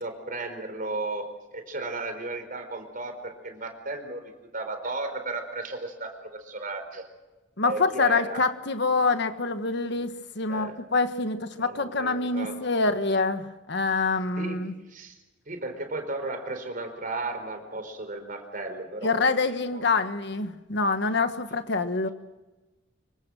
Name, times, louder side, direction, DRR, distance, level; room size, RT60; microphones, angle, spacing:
voice 1, 0.0-7.0 7.6-8.4 10.5-10.8 11.6-12.6 14.4-14.6 14.9-15.2 15.5-19.2 19.7-19.8, right 2 dB, 45° right, 6 dB, 4.5 m, -35 dB
voice 2, 7.6-14.7 19.0-22.1, left 3 dB, 60° left, 9 dB, 1.5 m, -26 dB
26.5 x 24.0 x 6.3 m, 1.1 s
head